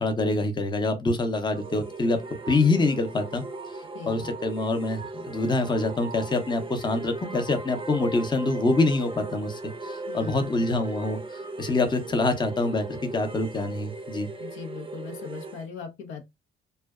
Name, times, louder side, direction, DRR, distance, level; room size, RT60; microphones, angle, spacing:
voice 1, 0.0-2.2 2.5-3.4 4.1-12.8 13.1-14.3, left 2 dB, 20° left, 0.7 m, -25 dB
sound 1, 1.5-15.7, right 3 dB, 25° right, 0.5 m, -38 dB
voice 2, 3.9-4.3 10.1-10.7 14.4-16.2, left 6 dB, 80° left, 0.7 m, -39 dB
2.5 x 2.2 x 2.2 m
cardioid pair, 90°, 20 cm